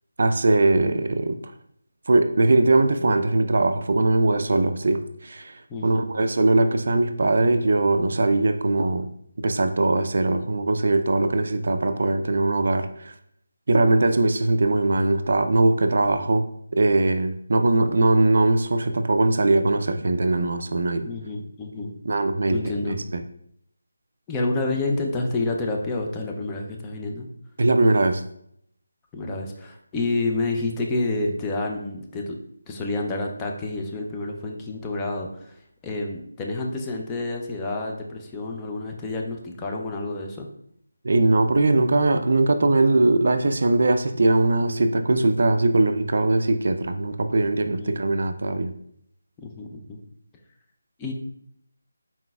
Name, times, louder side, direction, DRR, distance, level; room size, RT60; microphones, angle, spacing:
voice 1, 0.2-1.4 2.1-5.5 5.8-9.1 9.4-13.1 13.7-16.4 16.7-21.1 22.1-23.2 27.6-28.2 41.0-48.7, right 2 dB, 55° right, 8 dB, 0.4 m, -21 dB
voice 2, 5.7-6.1 21.0-21.9 22.5-23.0 24.3-27.3 29.1-32.4 32.7-35.6 35.8-40.5 47.8-48.0 49.4-50.0 51.0-51.1, left 2 dB, 10° left, 1 dB, 0.4 m, -29 dB
4.2 x 3.9 x 2.2 m, 0.70 s
figure-of-eight pair, 170°, 0 cm